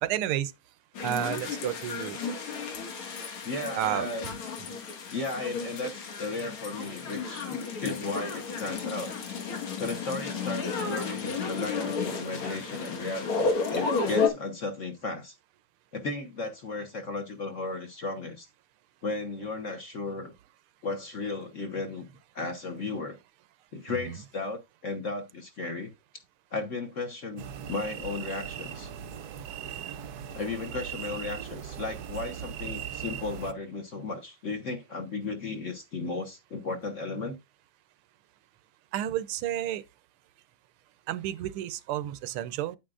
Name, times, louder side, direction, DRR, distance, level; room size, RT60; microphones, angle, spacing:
voice 1, 0.0-0.5 1.0-2.2 3.7-4.1 4.7-4.8 24.0-24.2 38.9-39.8 41.1-42.8, right 12 dB, 85° right, 1.6 m, -31 dB
sound 1, 0.9-14.3, left 4 dB, 80° left, 2.4 m, -32 dB
voice 2, 3.4-4.4 5.1-9.2 9.8-15.3 15.9-18.5 19.0-20.3 20.8-22.1 22.3-23.2 23.7-25.9 26.5-28.9 30.3-37.4, left 3 dB, 45° left, 1.2 m, -35 dB
sound 2, 27.4-33.5, right 9 dB, 70° right, 0.9 m, -39 dB
9.2 x 8.7 x 2.5 m
omnidirectional pair, 2.3 m